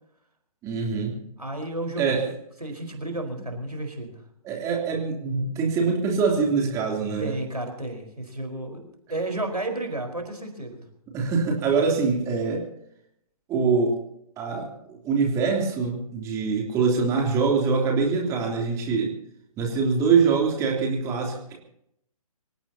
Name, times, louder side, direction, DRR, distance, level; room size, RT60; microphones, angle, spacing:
voice 1, 0.6-1.1 2.0-2.2 4.4-7.3 11.1-12.6 13.5-14.0 14.4-19.1 19.6-21.5, right 5 dB, 15° right, 0 dB, 3.3 m, -24 dB
voice 2, 1.4-2.1 2.6-4.2 7.2-10.8, right 2 dB, 85° right, 4 dB, 4.6 m, -32 dB
25.5 x 17.0 x 2.9 m, 0.74 s
figure-of-eight pair, 135°, 19 cm